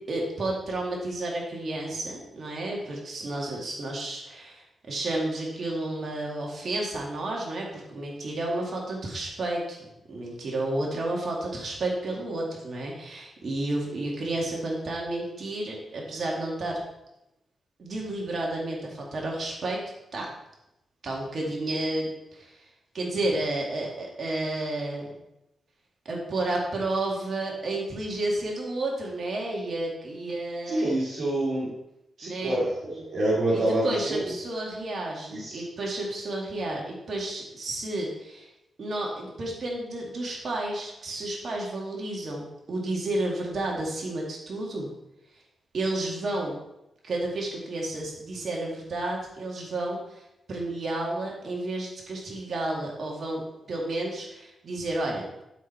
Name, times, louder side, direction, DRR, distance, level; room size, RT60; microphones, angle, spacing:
voice 1, 0.1-9.8 10.1-16.8 17.8-19.8 20.1-20.3 21.0-22.6 22.9-25.1 26.1-31.0 32.2-32.6 33.5-38.5 38.8-44.9 45.7-46.5 47.0-53.4 53.7-55.4, right 2 dB, 55° right, -2 dB, 2.2 m, -31 dB
voice 2, 30.7-31.7 32.2-34.3 35.3-35.6, right 1 dB, 75° right, -7 dB, 2.8 m, -27 dB
11.5 x 4.5 x 4.5 m, 0.87 s
cardioid pair, 65°, 0 cm